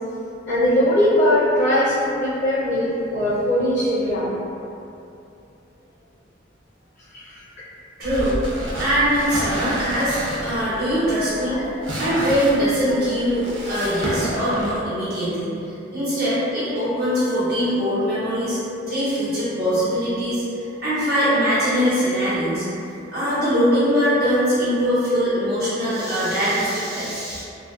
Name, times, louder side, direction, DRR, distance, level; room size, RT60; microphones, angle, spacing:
voice 1, 0.5-4.4 7.1-7.2 11.1-11.6, left 1 dB, 55° left, -10 dB, 0.5 m, -20 dB
voice 2, 8.0-8.4 8.8-11.6 11.9-15.6 15.9-18.6 18.9-22.7 23.1-27.4, equal, 55° right, -13 dB, 1.0 m, -22 dB
sound 1, 8.0-14.8, right 1 dB, 75° right, 0.5 m, -30 dB
2.5 x 2.2 x 2.2 m, 2.6 s
head